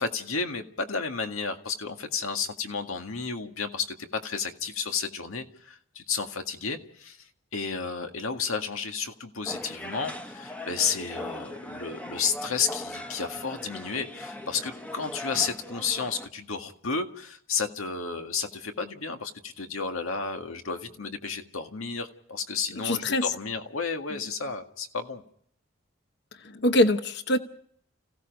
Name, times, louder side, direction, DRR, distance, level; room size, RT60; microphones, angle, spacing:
voice 1, 0.0-7.3 7.5-25.2, left 5 dB, 85° left, 5 dB, 1.9 m, -32 dB
sound 1, 9.4-16.3, left 1 dB, 5° left, 1.1 m, -39 dB
voice 2, 22.8-23.3 26.4-27.4, left 1 dB, 55° left, 8 dB, 1.0 m, -23 dB
30.0 x 16.5 x 5.3 m, 0.65 s
head